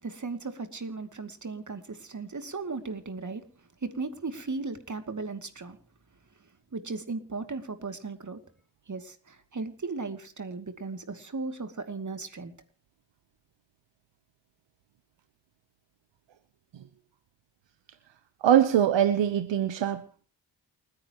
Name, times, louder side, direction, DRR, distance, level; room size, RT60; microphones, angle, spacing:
voice 1, 0.0-3.4 3.8-5.8 6.7-8.4 8.9-12.5, right 3 dB, 45° right, 2.7 m, -36 dB
voice 2, 18.4-20.0, right 10 dB, 85° right, 1.0 m, -22 dB
29.0 x 10.0 x 3.1 m
cardioid pair, 60°, 43 cm